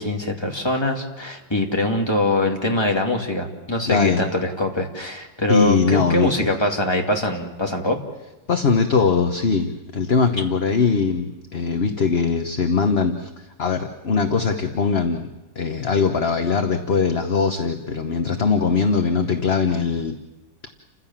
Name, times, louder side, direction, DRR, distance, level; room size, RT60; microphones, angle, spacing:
voice 1, 0.0-8.0, left 1 dB, 15° left, 1 dB, 2.5 m, -23 dB
voice 2, 3.9-4.2 5.5-6.5 8.5-15.3 15.5-20.1, left 5 dB, 40° left, 6 dB, 1.1 m, -21 dB
29.5 x 16.0 x 7.3 m, 1.0 s
omnidirectional pair, 2.0 m